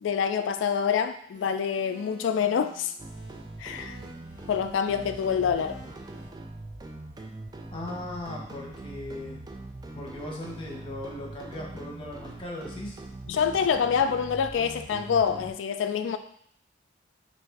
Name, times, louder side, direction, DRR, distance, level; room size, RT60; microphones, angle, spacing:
voice 1, 0.0-2.9 3.6-4.0 4.5-5.8 13.3-16.2, left 7 dB, 80° left, 9 dB, 0.3 m, -26 dB
sound 1, 1.3-6.3, right 1 dB, 50° right, 1.1 m, -52 dB
sound 2, 3.0-15.5, right 2 dB, 20° right, 0.3 m, -42 dB
voice 2, 7.7-9.4 9.9-13.0, left 1 dB, 30° left, -2 dB, 0.9 m, -38 dB
3.4 x 2.7 x 4.5 m, 0.66 s
head